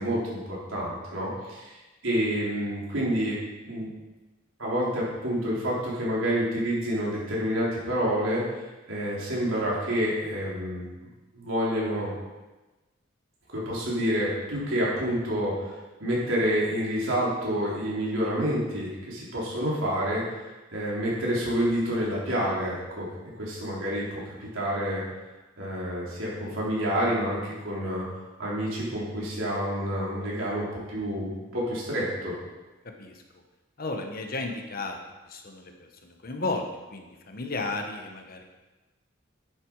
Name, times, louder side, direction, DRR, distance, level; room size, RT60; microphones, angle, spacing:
voice 1, 0.0-1.7 2.0-3.4 3.6-3.9 4.6-8.4 8.9-10.9 11.3-12.1 13.5-15.7 16.0-20.2 20.7-23.1 23.4-25.0 25.6-28.0 28.4-32.3, equal, 90° right, -6 dB, 4.0 m, -28 dB
voice 2, 33.8-35.0 35.3-35.7 36.0-36.6 36.9-38.4, left 3 dB, 50° left, 4 dB, 1.2 m, -33 dB
10.0 x 7.8 x 4.8 m, 1.1 s
head